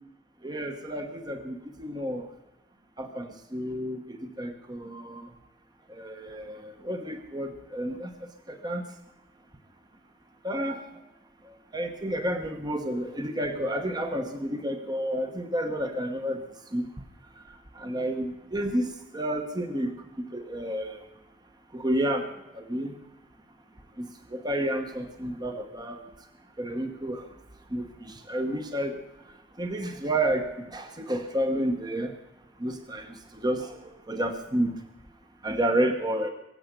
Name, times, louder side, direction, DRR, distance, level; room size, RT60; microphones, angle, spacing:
voice 1, 0.4-2.3 3.0-5.3 5.9-8.9 10.4-10.9 11.4-16.4 16.7-16.9 17.5-21.0 21.7-23.0 24.0-26.0 26.6-27.3 27.7-29.0 29.6-32.1 32.6-34.8 35.4-36.3, right 1 dB, 20° right, 6 dB, 1.1 m, -31 dB
23.0 x 7.9 x 6.8 m, 0.96 s
head